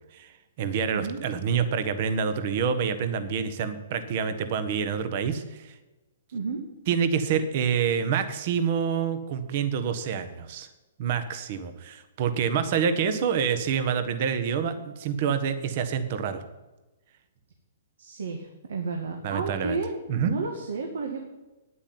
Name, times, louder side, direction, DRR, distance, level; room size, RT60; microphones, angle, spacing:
voice 1, 0.6-5.7 6.9-10.7 11.0-16.4 19.2-19.8 20.1-20.3, right 7 dB, 40° right, 10 dB, 1.3 m, -27 dB
voice 2, 18.0-21.2, right 4 dB, 80° right, 3 dB, 2.1 m, -32 dB
9.6 x 8.4 x 9.5 m, 1.1 s
hypercardioid pair, 160°, 0 cm